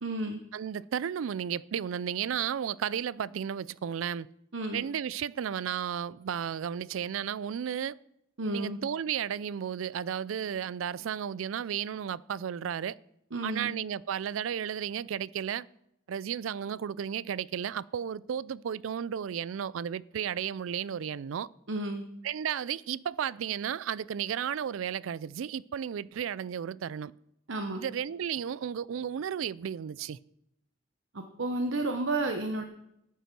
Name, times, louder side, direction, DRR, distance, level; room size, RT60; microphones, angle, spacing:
voice 1, 0.0-0.4 4.5-4.8 8.4-8.8 13.3-13.7 21.7-22.0 27.5-27.8 31.4-32.6, right 2 dB, 70° right, 0.9 m, -31 dB
voice 2, 0.5-4.3 4.7-8.0 8.5-13.0 13.4-15.7 16.1-21.5 22.2-27.1 27.8-30.2, right 8 dB, 90° right, 0.4 m, -33 dB
13.0 x 8.3 x 6.0 m
head